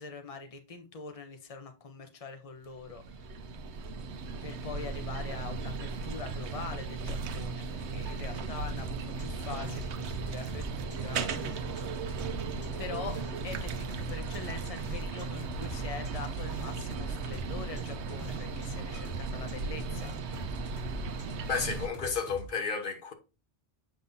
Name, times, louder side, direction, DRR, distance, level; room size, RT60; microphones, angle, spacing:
voice 1, 0.0-3.3 4.4-11.7 12.8-13.2 13.4-20.5, left 5 dB, 35° left, 1.0 m, -43 dB
sound 1, 2.7-21.9, right 4 dB, 85° right, 1.0 m, -36 dB
sound 2, 8.8-11.8 12.1-18.7 18.9-22.5, right 1 dB, 70° left, 2.6 m, -44 dB
voice 2, 21.5-23.1, left 5 dB, 50° left, 1.3 m, -32 dB
7.8 x 5.4 x 2.7 m
omnidirectional pair, 1.1 m